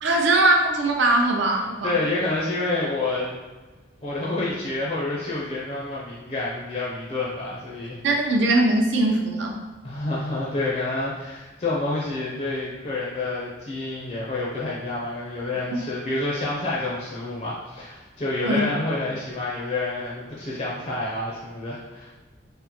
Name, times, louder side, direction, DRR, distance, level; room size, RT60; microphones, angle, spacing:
voice 1, 0.0-2.0 8.0-9.5 18.4-18.6, right 2 dB, 75° right, 1 dB, 0.5 m, -20 dB
voice 2, 1.8-3.3 4.0-8.0 9.8-22.1, left 2 dB, 35° left, -6 dB, 0.4 m, -28 dB
3.6 x 2.1 x 2.9 m, 1.3 s
head